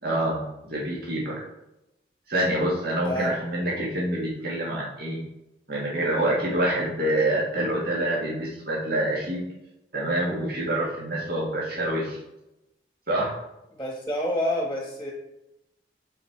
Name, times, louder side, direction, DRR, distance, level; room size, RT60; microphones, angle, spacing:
voice 1, 0.0-1.3 2.3-5.2 5.7-9.4 9.9-12.2 13.1-13.4, right 1 dB, 55° right, -5 dB, 1.8 m, -26 dB
voice 2, 13.7-15.1, left 1 dB, 10° left, -1 dB, 1.2 m, -28 dB
8.1 x 4.3 x 4.3 m, 0.89 s
head